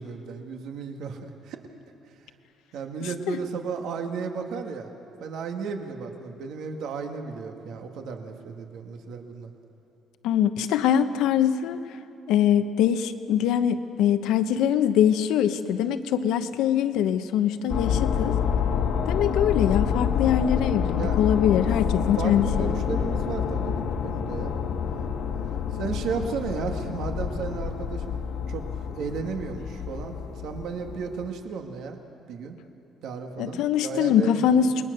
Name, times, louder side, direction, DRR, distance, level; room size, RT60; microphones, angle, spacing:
voice 1, 0.0-1.6 2.7-4.9 5.2-9.5 20.9-21.2 22.2-24.6 25.8-28.2 28.5-30.2 30.4-32.0 32.3-32.6 33.0-34.7, right 5 dB, 70° right, 4 dB, 2.0 m, -34 dB
voice 2, 10.2-11.8 12.3-18.4 19.1-22.8 33.4-34.8, left 9 dB, 90° left, 9 dB, 1.1 m, -23 dB
sound 1, 17.7-31.3, left 7 dB, 65° left, 1.6 m, -28 dB
28.5 x 21.5 x 6.7 m, 2.9 s
cardioid pair, 145°, 0 cm